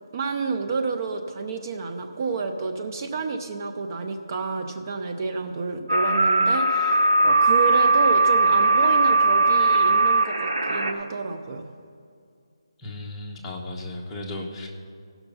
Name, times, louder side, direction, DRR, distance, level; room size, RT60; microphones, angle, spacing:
voice 1, 0.1-11.6, right 4 dB, 35° right, 6 dB, 0.7 m, -29 dB
sound 1, 5.9-10.9, right 2 dB, 75° right, 1.1 m, -19 dB
voice 2, 12.8-14.7, left 2 dB, 10° left, -3 dB, 1.1 m, -35 dB
15.5 x 5.9 x 5.5 m, 2.3 s
figure-of-eight pair, 160°, 3 cm